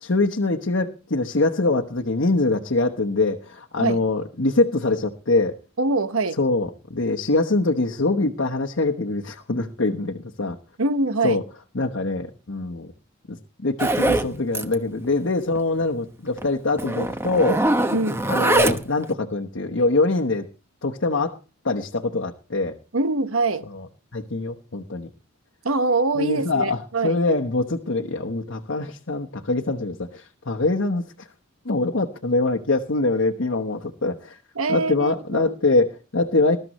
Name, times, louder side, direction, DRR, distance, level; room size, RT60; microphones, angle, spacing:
voice 1, 0.0-5.6 6.4-10.6 11.2-11.4 11.7-12.9 13.3-17.6 18.3-20.5 20.8-21.4 21.6-22.8 23.7-23.9 24.1-25.1 26.2-31.3 31.6-34.4 34.7-36.6, left 2 dB, 60° left, 1.1 m, -23 dB
voice 2, 5.8-6.4 10.8-11.4 17.9-18.2 22.9-23.7 25.6-27.2 34.5-35.5, right 3 dB, 75° right, 1.2 m, -24 dB
Zipper (clothing), 13.8-14.3 14.5-14.7 15.0-15.1 15.5-15.6 16.4-16.5 16.8-19.0, right 1 dB, 10° right, 0.9 m, -22 dB
20.5 x 13.0 x 3.1 m
head